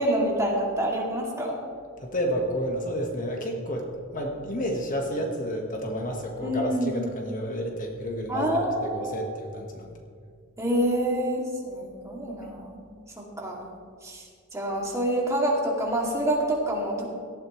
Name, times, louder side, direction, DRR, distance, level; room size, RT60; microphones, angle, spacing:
voice 1, 0.0-1.6 6.4-7.0 8.3-9.4 10.6-12.8 13.2-13.6 14.0-14.2 14.5-17.1, right 1 dB, 15° right, -3 dB, 2.5 m, -27 dB
voice 2, 2.0-3.9 4.1-9.9, equal, 40° left, 2 dB, 1.5 m, -30 dB
18.0 x 13.0 x 3.2 m, 2.1 s
head